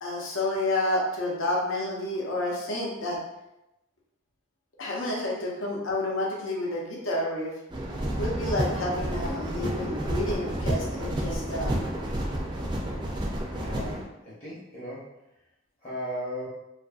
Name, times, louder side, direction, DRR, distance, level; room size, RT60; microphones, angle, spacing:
voice 1, 0.0-3.2 4.8-7.5 8.1-11.8, left 1 dB, 85° left, -2 dB, 0.7 m, -30 dB
sound 1, 7.7-14.0, right 1 dB, 25° right, 0.3 m, -30 dB
voice 2, 13.5-15.2 15.8-16.5, equal, 40° left, -8 dB, 0.7 m, -37 dB
2.6 x 2.4 x 2.3 m, 0.88 s
head